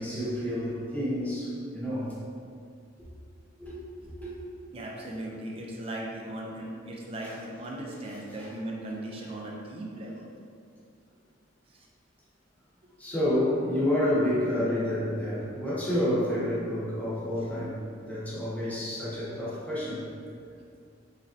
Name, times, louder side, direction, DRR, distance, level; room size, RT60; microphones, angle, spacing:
voice 1, 0.0-2.2 3.6-4.3 7.2-7.7 8.0-8.5 13.0-20.0, left 1 dB, 10° left, -10 dB, 0.8 m, -29 dB
voice 2, 4.7-10.3, right 1 dB, 30° right, -2 dB, 0.3 m, -38 dB
3.1 x 2.3 x 2.5 m, 2.3 s
head